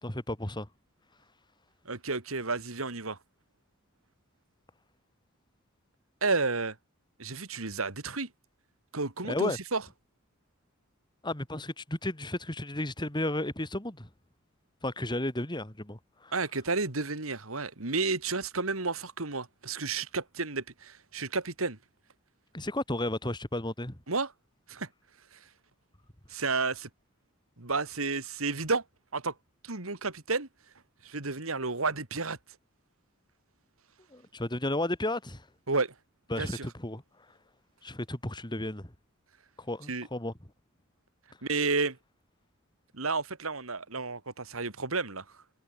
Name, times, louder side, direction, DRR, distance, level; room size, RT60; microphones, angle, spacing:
voice 1, 0.0-0.7 9.3-9.6 11.2-14.1 14.8-16.3 22.5-24.0 34.1-35.4 36.3-37.0 37.8-38.9 39.6-40.3, left 1 dB, 20° left, 3.0 m, -33 dB
voice 2, 1.8-3.2 6.2-6.8 7.2-8.3 8.9-9.8 16.3-21.8 24.1-24.3 24.7-24.9 25.3-25.4 26.3-26.9 27.6-28.8 29.1-29.3 29.6-30.5 31.0-32.4 35.7-35.9 36.4-36.6 39.9-40.1 41.4-42.0 42.9-45.2, right 3 dB, 85° right, 2.7 m, -31 dB
head